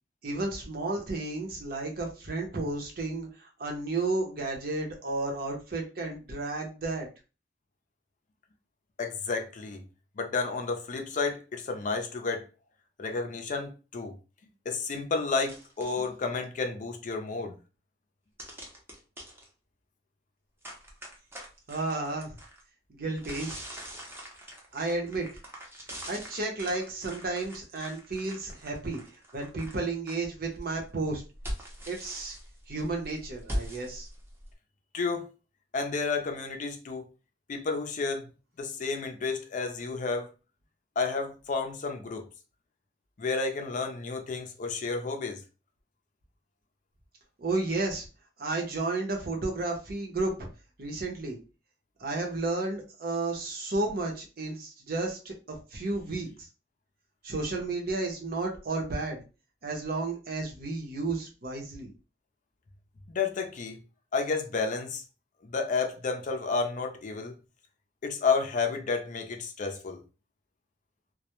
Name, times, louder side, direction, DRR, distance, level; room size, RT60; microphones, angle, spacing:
voice 1, 0.2-7.1 21.7-22.4 22.9-23.5 24.7-25.3 26.1-29.0 29.3-31.2 31.8-32.4 32.7-34.1 47.4-48.1 48.4-50.5 50.8-51.4 52.0-56.3 57.2-59.2 59.6-61.9, right 2 dB, 55° right, 0.7 m, -32 dB
voice 2, 9.0-9.8 10.2-12.4 13.0-14.1 14.7-17.6 34.9-35.3 35.7-37.1 37.5-38.3 38.6-40.3 41.0-42.2 43.2-45.4 63.1-63.8 64.1-65.0 65.4-67.3 68.0-70.0, left 4 dB, 45° left, 0.4 m, -31 dB
sound 1, 15.5-16.1 18.4-19.5 20.6-22.6 23.2-30.1 30.5-34.5, equal, 15° right, 0.6 m, -42 dB
2.2 x 2.0 x 2.9 m
head